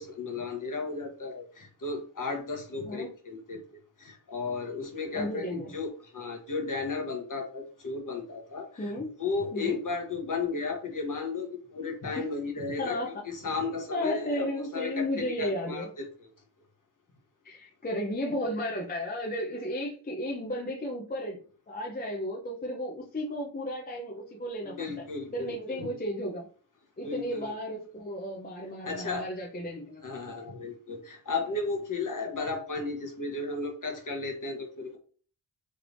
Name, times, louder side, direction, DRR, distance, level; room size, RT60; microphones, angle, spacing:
voice 1, 0.0-8.9 9.2-13.0 13.2-16.1 24.6-25.9 27.0-27.5 28.8-29.3 30.0-35.0, left 4 dB, 40° left, 2 dB, 1.0 m, -34 dB
voice 2, 5.1-5.7 8.8-9.1 9.5-9.8 12.2-12.3 12.8-13.2 13.9-15.9 17.4-21.4 21.7-25.0 25.3-26.5 27.0-30.0 30.3-30.4, equal, 20° left, -1 dB, 0.5 m, -34 dB
3.4 x 3.2 x 2.5 m, 0.41 s
wide cardioid pair, 140°, 49 cm